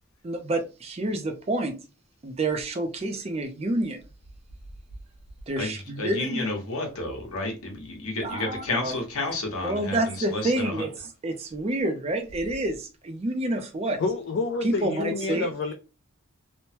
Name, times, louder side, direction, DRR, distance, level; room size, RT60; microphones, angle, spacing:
voice 1, 0.2-1.8 2.2-4.0 5.5-6.4 8.2-8.9 9.6-10.9 11.2-14.0 14.6-15.5, right 1 dB, 30° right, 0.4 m, -28 dB
voice 2, 5.6-10.8, left 2 dB, 80° left, 1.1 m, -31 dB
voice 3, 14.0-15.7, left 3 dB, 55° left, 0.3 m, -28 dB
3.1 x 2.1 x 2.8 m
head